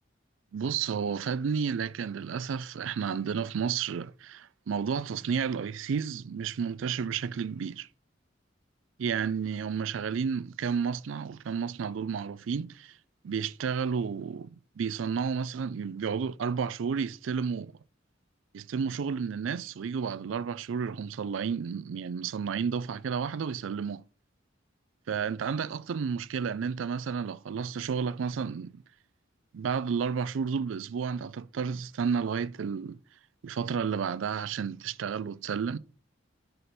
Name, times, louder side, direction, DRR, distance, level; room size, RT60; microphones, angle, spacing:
voice 1, 0.5-7.9 9.0-13.0 13.2-17.8 18.5-24.0 25.1-28.8 29.5-33.0 33.4-35.8, right 6 dB, 90° right, 0.4 m, -31 dB
5.0 x 4.1 x 5.9 m
head